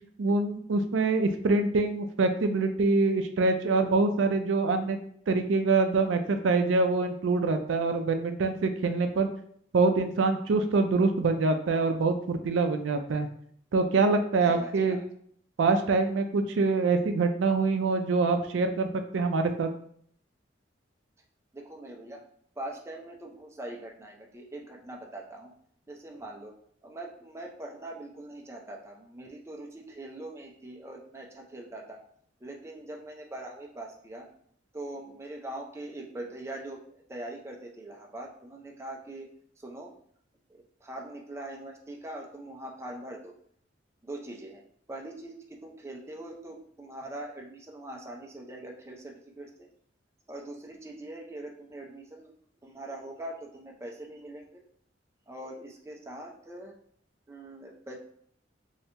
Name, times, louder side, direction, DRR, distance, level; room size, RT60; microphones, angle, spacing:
voice 1, 0.2-5.0 5.3-9.3 9.7-13.3 13.7-15.0 15.6-19.7, right 3 dB, 90° right, 6 dB, 0.4 m, -25 dB
voice 2, 14.5-15.0 21.5-22.2 22.6-25.5 25.9-26.5 26.8-32.0 32.4-34.3 34.7-39.3 39.6-39.9 40.5-43.3 44.0-44.6 44.9-49.7 50.3-52.3 52.6-54.6 55.3-56.7 57.3-58.0, right 1 dB, 15° right, -1 dB, 0.4 m, -42 dB
2.8 x 2.7 x 3.2 m, 0.64 s
head